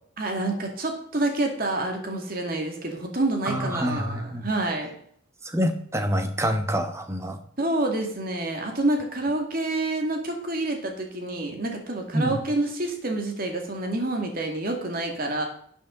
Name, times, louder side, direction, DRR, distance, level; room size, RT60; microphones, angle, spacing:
voice 1, 0.2-4.9 7.6-15.5, right 2 dB, 45° right, 3 dB, 2.1 m, -28 dB
voice 2, 3.4-4.5 5.4-7.4 12.1-12.4, equal, 15° right, 6 dB, 1.0 m, -26 dB
11.5 x 8.4 x 3.8 m, 0.64 s
head